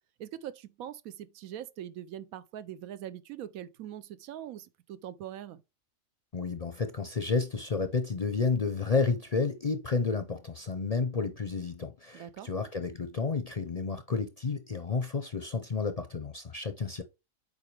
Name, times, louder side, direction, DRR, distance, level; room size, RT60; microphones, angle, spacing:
voice 1, 0.2-5.6 12.1-12.5, right 11 dB, 90° right, 1.1 m, -42 dB
voice 2, 6.3-17.0, left 4 dB, 45° left, 0.5 m, -31 dB
7.4 x 4.6 x 3.2 m
omnidirectional pair, 1.4 m